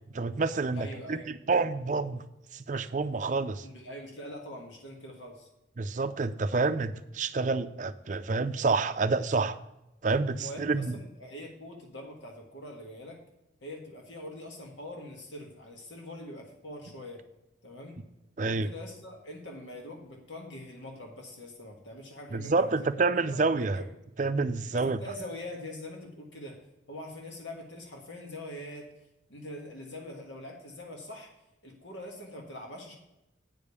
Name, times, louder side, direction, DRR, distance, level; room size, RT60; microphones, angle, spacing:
voice 1, 0.1-2.2 2.5-3.7 5.8-9.6 10.0-10.9 18.4-18.7 22.3-23.8 24.2-25.0, right 3 dB, 40° right, 11 dB, 0.5 m, -28 dB
voice 2, 0.7-1.3 3.6-5.5 10.4-13.2 13.6-17.2 17.6-18.0 18.4-22.9 23.3-23.9 24.7-28.9 29.3-31.3 31.6-32.9, left 1 dB, 75° left, 1 dB, 1.6 m, -43 dB
8.9 x 5.2 x 6.9 m, 0.91 s
head